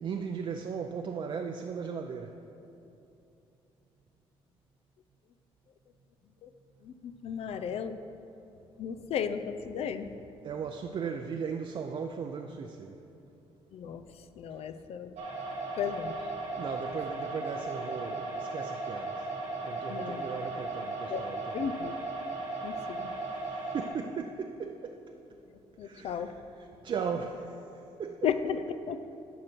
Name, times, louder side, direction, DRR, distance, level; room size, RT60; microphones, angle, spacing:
voice 1, 0.0-2.4 10.4-13.0 16.5-19.3 19.6-21.7 22.8-23.0 23.7-25.0 25.8-27.6 28.0-28.3, right 6 dB, 50° right, 4 dB, 0.5 m, -37 dB
voice 2, 6.8-8.0 8.8-10.1 13.7-14.0 14.4-15.1 15.8-16.2 19.9-20.3 21.1-21.2 21.5-21.9 22.6-23.1 25.8-26.3 28.2-28.6 28.9-29.0, left 8 dB, 70° left, 10 dB, 0.5 m, -34 dB
sound 1, 15.2-23.9, right 2 dB, 85° right, 1.9 m, -36 dB
11.0 x 6.1 x 4.5 m, 2.8 s
cardioid pair, 85°, 11 cm